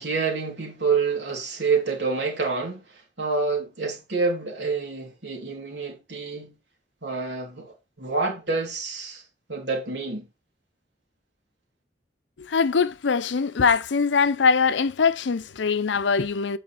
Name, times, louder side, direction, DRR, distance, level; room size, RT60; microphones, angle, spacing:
voice 1, 0.0-2.8 3.2-6.5 7.0-9.2 9.5-10.3, right 4 dB, 70° right, 3.1 m, -27 dB
voice 2, 12.4-16.6, left 5 dB, 85° left, 0.6 m, -22 dB
8.6 x 5.0 x 4.4 m
head